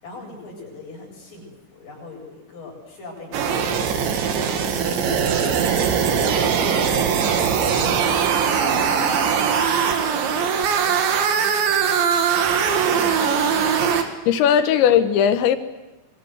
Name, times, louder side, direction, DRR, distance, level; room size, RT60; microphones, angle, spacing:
voice 1, 0.0-8.9 9.4-11.0 11.3-12.0 12.6-13.6, left 2 dB, 50° left, 9.7 m, -39 dB
sound 1, 3.3-14.0, right 7 dB, 85° right, 4.4 m, -21 dB
voice 2, 14.3-15.6, left 9 dB, 85° left, 3.6 m, -17 dB
25.5 x 24.0 x 8.2 m
omnidirectional pair, 5.1 m